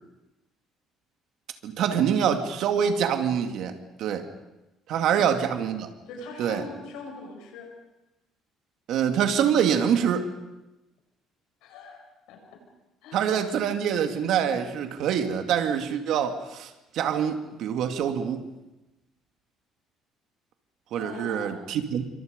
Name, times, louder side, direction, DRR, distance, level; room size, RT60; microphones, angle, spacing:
voice 1, 1.6-4.2 4.9-5.9 6.4-6.6 8.9-10.3 13.1-18.4 20.9-22.0, right 8 dB, 60° right, 6 dB, 2.3 m, -25 dB
voice 2, 6.1-7.7 11.6-12.4 13.0-13.4 21.0-21.6, left 4 dB, 90° left, 2 dB, 7.7 m, -42 dB
28.0 x 24.5 x 5.3 m, 0.97 s
cardioid pair, 150°, 0 cm